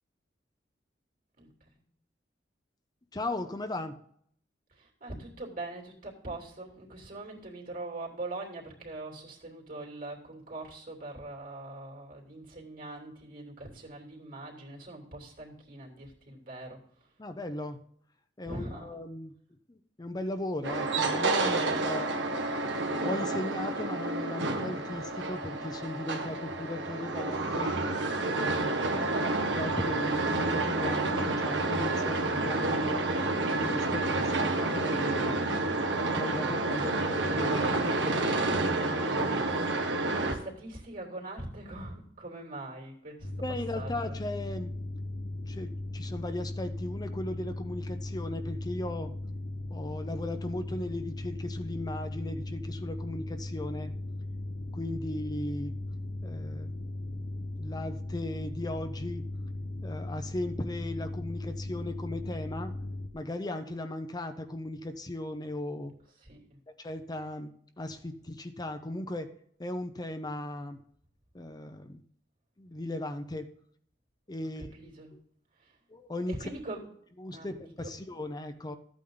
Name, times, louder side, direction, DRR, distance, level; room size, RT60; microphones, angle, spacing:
voice 1, 3.1-4.0 17.2-17.8 18.4-19.3 19.7-22.1 22.8-27.7 28.3-29.0 29.5-33.1 33.5-35.4 36.0-38.2 39.0-39.5 43.4-44.7 45.5-49.1 49.7-53.9 54.7-55.8 56.2-56.7 57.6-59.3 59.8-62.7 63.1-65.9 66.8-69.3 69.6-70.8 71.3-72.0 72.6-73.5 74.3-74.7 75.1-75.2 75.9-76.5 77.2-78.8, left 1 dB, 20° left, 7 dB, 0.7 m, -37 dB
voice 2, 4.8-16.8 18.4-18.9 28.3-28.4 40.2-43.3 43.7-44.1 66.2-66.6 74.4-74.5 74.7-75.1 76.4-76.8 77.3-77.5, right 2 dB, 50° right, 0 dB, 3.1 m, -42 dB
sound 1, 20.6-40.3, right 2 dB, 75° right, 1.6 m, -29 dB
sound 2, 43.2-63.1, left 1 dB, 85° left, 1.3 m, -37 dB
13.5 x 8.7 x 3.9 m, 0.64 s
head